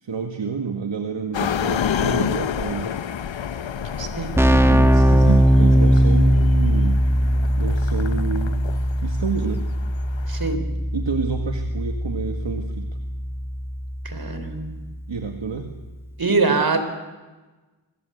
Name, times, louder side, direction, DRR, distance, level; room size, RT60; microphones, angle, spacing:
voice 1, 0.0-2.9 4.5-7.0 7.5-8.7 9.0-9.6 10.9-12.9 15.1-15.7, right 5 dB, 65° right, 4 dB, 2.0 m, -28 dB
sound 1, 1.3-10.5, left 8 dB, 65° left, 1.0 m, -30 dB
Keyboard (musical), 3.8-3.9 4.1-14.7, equal, 5° right, 1.5 m, -20 dB
voice 2, 4.0-4.3 10.3-10.6 14.0-14.9 16.2-16.8, right 3 dB, 45° right, 8 dB, 4.3 m, -23 dB
25.5 x 21.0 x 8.1 m, 1.2 s
wide cardioid pair, 70°, 48 cm